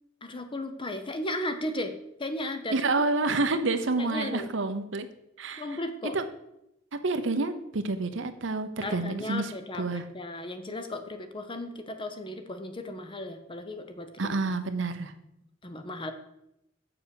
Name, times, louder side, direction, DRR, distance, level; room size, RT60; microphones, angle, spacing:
voice 1, 0.2-1.9 2.2-2.9 4.0-4.5 5.6-6.2 8.8-14.3 15.6-16.1, left 1 dB, 25° left, 7 dB, 0.9 m, -35 dB
voice 2, 2.7-5.1 5.4-5.8 6.0-6.2 6.9-9.5 9.8-10.0 14.2-15.1, right 3 dB, 70° right, 9 dB, 0.9 m, -28 dB
6.9 x 6.9 x 6.9 m, 0.83 s
head